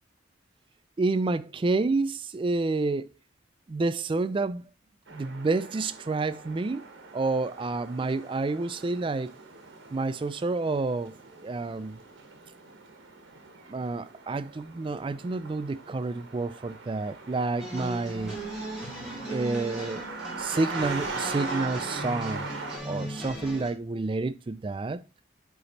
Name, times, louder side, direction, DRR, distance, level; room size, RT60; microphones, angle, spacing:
voice 1, 1.0-3.1 3.7-4.6 5.1-6.8 7.1-9.3 9.9-11.1 11.4-12.0 13.7-18.4 19.2-20.1 20.4-22.5 22.8-25.0, right 3 dB, 25° right, 0.3 m, -29 dB
sound 1, 5.1-22.8, right 4 dB, 80° right, 1.2 m, -41 dB
sound 2, 17.6-23.7, right 1 dB, 5° right, 1.8 m, -37 dB
8.3 x 3.0 x 4.0 m
head